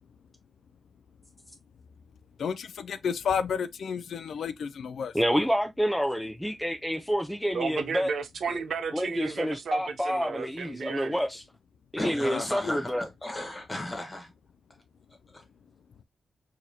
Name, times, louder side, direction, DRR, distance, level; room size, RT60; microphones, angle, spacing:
voice 1, 2.4-5.1 12.3-12.8, left 7 dB, 90° left, 0.3 m, -31 dB
voice 2, 5.1-8.1 8.5-8.6 8.9-11.4 11.9-13.1, equal, ahead, 0.4 m, -28 dB
voice 3, 7.5-11.2, right 5 dB, 85° right, 0.6 m, -33 dB
voice 4, 12.0-12.9 13.2-14.3 15.3-15.4, left 1 dB, 25° left, 1.4 m, -35 dB
4.8 x 2.8 x 2.7 m
wide cardioid pair, 100°, 0 cm